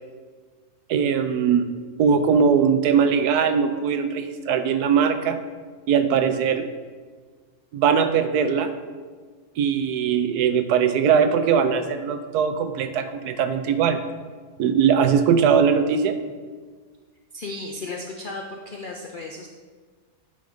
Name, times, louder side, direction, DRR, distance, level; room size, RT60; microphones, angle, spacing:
voice 1, 0.9-1.6 2.0-5.4 5.9-6.7 7.7-8.7 9.6-14.0 14.6-16.2, right 7 dB, 80° right, 9 dB, 1.1 m, -20 dB
voice 2, 17.3-19.5, left 2 dB, 80° left, 1 dB, 0.4 m, -34 dB
9.0 x 3.9 x 4.9 m, 1.5 s
omnidirectional pair, 1.7 m